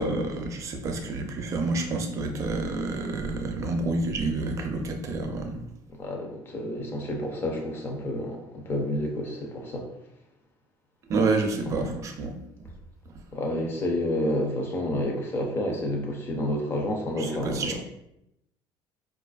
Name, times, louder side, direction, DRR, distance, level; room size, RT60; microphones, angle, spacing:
voice 1, 0.0-5.6 11.1-12.7 17.2-17.8, right 3 dB, 35° right, 3 dB, 0.5 m, -29 dB
voice 2, 6.0-9.9 11.7-12.0 13.3-17.8, left 1 dB, 25° left, 2 dB, 0.5 m, -30 dB
4.6 x 2.4 x 2.3 m, 0.83 s
cardioid pair, 165°, 9 cm